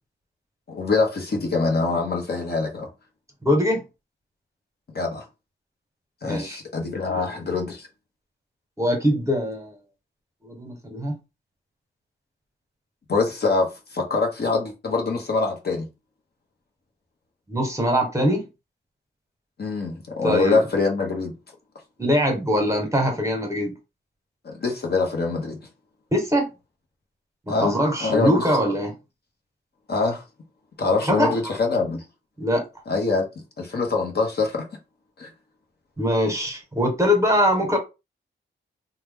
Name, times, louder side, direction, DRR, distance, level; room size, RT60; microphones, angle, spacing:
voice 1, 0.7-2.9 4.9-5.3 6.2-7.9 13.1-15.8 19.6-21.3 24.4-25.6 27.5-28.4 29.9-30.2 30.8-32.0 32.9-33.2 33.6-34.7 35.2-35.3, left 4 dB, 55° left, 0.9 m, -24 dB
voice 2, 3.4-3.8 6.2-6.6 7.1-7.2 8.8-9.7 10.4-11.2 17.5-18.5 20.2-20.6 22.0-23.7 26.1-26.5 27.5-28.9 31.1-31.3 32.4-32.6 36.0-37.8, equal, 15° right, 1.1 m, -22 dB
2.9 x 2.2 x 3.5 m
wide cardioid pair, 85°, 20 cm